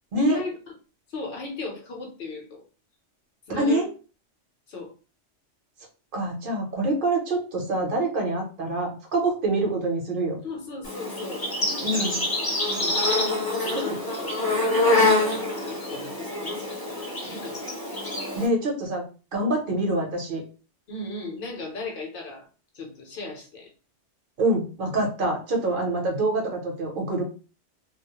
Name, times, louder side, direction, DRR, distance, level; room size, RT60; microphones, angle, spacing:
voice 1, 0.2-0.6 1.1-2.6 3.5-3.8 4.7-4.9 10.4-12.1 12.6-13.0 13.6-17.6 20.9-22.5 22.7-23.7, left 3 dB, 55° left, 1 dB, 0.8 m, -37 dB
voice 2, 3.5-3.9 6.1-10.4 11.8-12.2 13.7-13.8 18.3-19.0 19.3-20.4 24.4-27.2, right 2 dB, 50° right, 1 dB, 0.8 m, -25 dB
Insect, 10.8-18.5, left 2 dB, 25° left, 0.5 m, -26 dB
2.3 x 2.0 x 2.9 m, 0.35 s
omnidirectional pair, 1.2 m